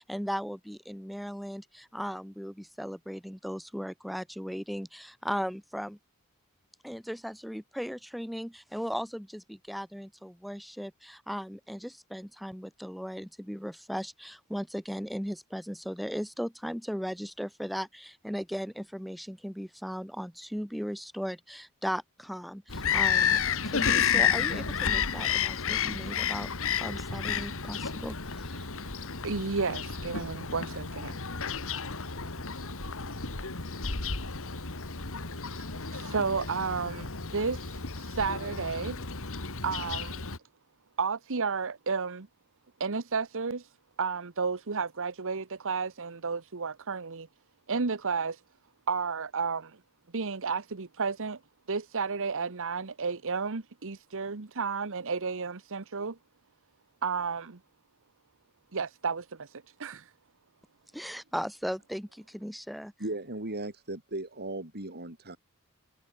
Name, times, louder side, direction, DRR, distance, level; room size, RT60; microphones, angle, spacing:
voice 1, 0.0-6.0 6.8-23.4 23.6-26.5 26.8-28.7 60.9-62.9, equal, ahead, 5.9 m, -37 dB
Bird vocalization bird call bird song, 22.7-40.4, left 7 dB, 65° left, 2.5 m, -31 dB
voice 2, 29.1-31.2 31.7-31.8 33.8-33.9 35.5-39.0 39.6-40.2 41.0-42.3 42.8-43.7 44.0-47.3 47.7-48.4 48.9-49.8 50.1-51.4 51.7-56.2 57.0-57.6 58.7-60.1, right 5 dB, 65° right, 1.1 m, -32 dB
voice 3, 63.0-65.4, right 2 dB, 45° right, 4.5 m, -37 dB
head